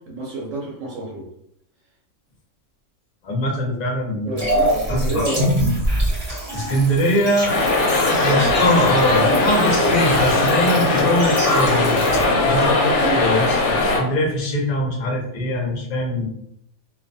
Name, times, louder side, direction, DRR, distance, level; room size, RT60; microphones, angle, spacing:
voice 1, 0.1-1.3 4.3-5.5 10.4-10.6 12.1-13.3, right 2 dB, 70° right, -2 dB, 0.9 m, -29 dB
voice 2, 3.2-5.2 6.5-7.6 8.2-12.0 12.4-16.3, left 1 dB, 45° left, -2 dB, 0.5 m, -22 dB
sound 1, 4.4-12.2, equal, 30° right, 0.8 m, -25 dB
sound 2, 7.5-14.0, left 2 dB, 65° left, 0.8 m, -19 dB
2.3 x 2.2 x 2.5 m, 0.75 s
omnidirectional pair, 1.4 m